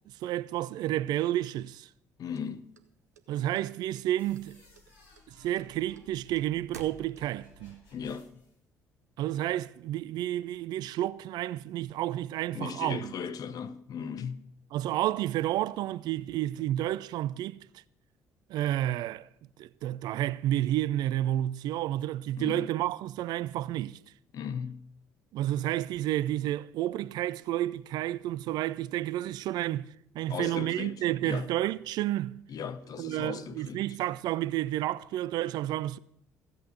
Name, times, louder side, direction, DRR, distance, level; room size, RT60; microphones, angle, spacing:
voice 1, 0.2-1.9 3.3-4.6 5.3-7.8 9.2-13.1 14.7-17.6 18.5-19.3 19.6-24.0 25.3-29.9 30.1-32.4 33.0-36.0, right 13 dB, 55° right, 0.4 m, -30 dB
voice 2, 2.2-2.6 7.9-8.3 12.5-14.4 22.4-22.7 24.3-24.8 30.3-30.9 31.2-31.5 32.5-33.8, left 7 dB, 45° left, 1.0 m, -37 dB
sound 1, 2.3-3.6 3.9-4.5 4.8-7.6, right 6 dB, 80° right, 0.8 m, -51 dB
sound 2, 4.2-8.6, left 1 dB, 65° left, 4.4 m, -58 dB
15.0 x 8.6 x 6.7 m
figure-of-eight pair, 50°, 8 cm